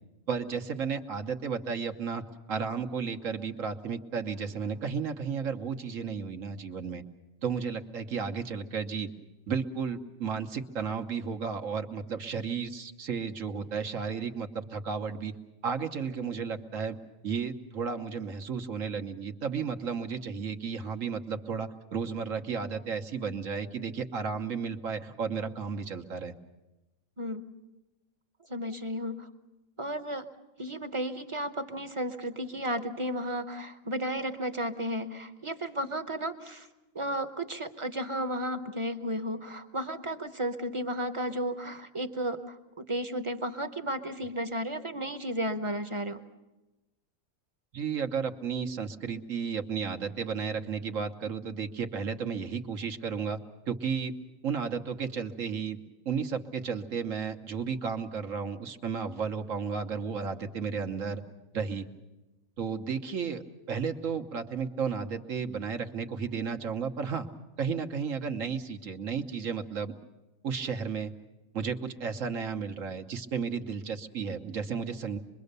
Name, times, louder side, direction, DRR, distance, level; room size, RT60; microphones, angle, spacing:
voice 1, 0.3-7.0 7.4-9.1 9.5-15.3 15.6-17.0 17.2-26.3 47.7-53.4 53.7-54.1 54.4-55.8 56.0-61.2 61.5-61.9 62.6-67.3 67.6-69.9 70.4-71.1 71.5-75.2, right 6 dB, 80° right, 5 dB, 1.5 m, -33 dB
voice 2, 28.5-29.3 29.8-30.3 30.6-36.7 36.9-46.2, equal, 25° right, 8 dB, 0.8 m, -33 dB
25.5 x 22.0 x 6.7 m, 1.1 s
omnidirectional pair, 1.3 m